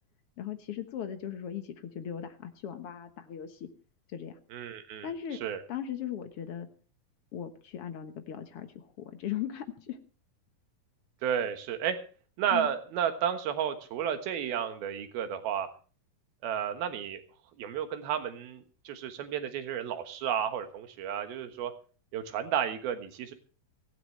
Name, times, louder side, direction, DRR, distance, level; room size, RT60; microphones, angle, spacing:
voice 1, 0.4-3.7 4.1-4.4 5.0-5.4 5.7-6.7 7.3-10.0 12.5-12.7, left 10 dB, 65° left, 7 dB, 1.5 m, -38 dB
voice 2, 4.5-5.1 5.4-5.6 11.2-12.0 12.4-15.7 16.4-17.2 17.6-21.7 22.1-23.3, right 9 dB, 85° right, 8 dB, 3.3 m, -32 dB
17.0 x 16.0 x 3.2 m, 0.39 s
omnidirectional pair, 4.2 m